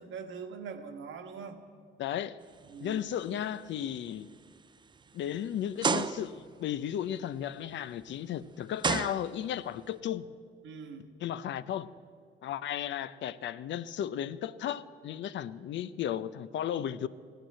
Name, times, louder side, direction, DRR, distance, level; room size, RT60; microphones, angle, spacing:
voice 1, 0.0-1.6 2.6-3.0 10.6-11.1, right 5 dB, 75° right, 1.4 m, -42 dB
voice 2, 2.0-2.4 2.8-4.3 5.1-10.3 11.2-11.9 12.4-17.1, left 10 dB, 65° left, 0.6 m, -34 dB
sound 1, 2.6-3.0 3.5-3.6 4.3-4.4 5.8-6.5 8.0-8.1 8.8-9.7, right 5 dB, 25° right, 0.4 m, -31 dB
17.0 x 9.1 x 7.7 m
cardioid pair, 90°, 20 cm